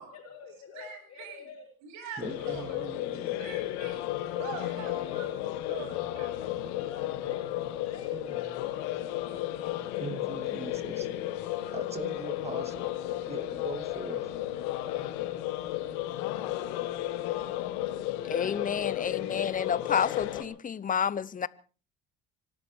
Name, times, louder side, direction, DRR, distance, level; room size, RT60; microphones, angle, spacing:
voice 1, 0.1-1.7 2.6-2.9 4.6-5.6 5.9-8.5, left 6 dB, 55° left, 4.7 m, -49 dB
voice 2, 0.7-1.5 1.8-2.8 3.4-4.1 4.4-5.3 5.7-6.3, right 6 dB, 75° right, 8.0 m, -43 dB
sound 1, 2.2-20.4, left 14 dB, 80° left, 2.4 m, -33 dB
voice 3, 2.2-3.4 7.0-7.1 8.1-8.4 10.0-11.1 11.7-12.9 13.2-14.3, right 4 dB, 20° right, 2.5 m, -41 dB
voice 4, 18.3-21.5, left 7 dB, 30° left, 0.9 m, -30 dB
25.5 x 12.0 x 4.5 m
supercardioid pair, 80°, 29 cm